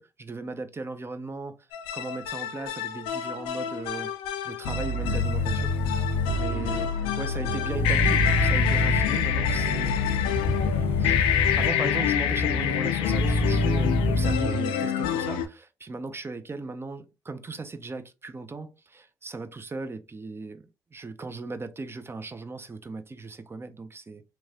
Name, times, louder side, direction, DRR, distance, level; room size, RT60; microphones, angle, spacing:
voice 1, 0.0-1.7 1.9-4.1 4.4-6.0 6.4-9.9 11.0-11.3 11.6-24.2, right 3 dB, 30° right, 0.5 m, -37 dB
sound 1, 1.7-15.5, left 7 dB, 85° left, 0.4 m, -26 dB
sound 2, 5.0-6.3 7.7-9.0 10.4-11.7 13.0-14.3, left 1 dB, 25° left, 0.5 m, -27 dB
3.0 x 2.3 x 2.7 m
hypercardioid pair, 55°, 9 cm